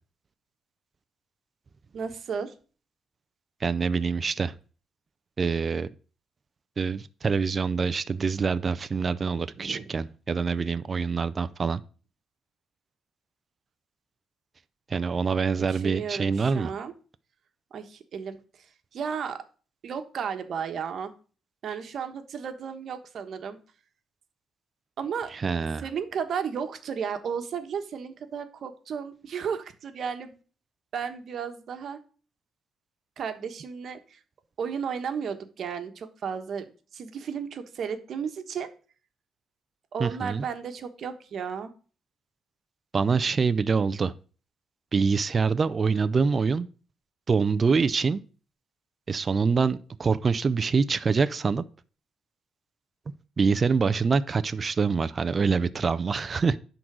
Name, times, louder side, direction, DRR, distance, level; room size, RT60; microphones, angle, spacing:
voice 1, 1.9-2.5 9.5-9.8 15.7-16.9 17.7-18.4 18.9-19.4 19.8-21.1 21.6-23.6 25.0-25.3 25.8-30.3 30.9-32.0 33.2-34.2 34.6-36.7 36.9-38.7 39.9-41.7, right 7 dB, 60° right, 1.2 m, -33 dB
voice 2, 3.6-4.5 5.4-5.9 6.8-11.8 14.9-16.7 25.4-25.8 40.0-40.5 42.9-44.1 44.9-46.7 47.3-48.2 49.1-51.6 53.4-56.6, right 5 dB, 35° right, 0.5 m, -25 dB
10.5 x 3.9 x 6.2 m
cardioid pair, 90°, 0 cm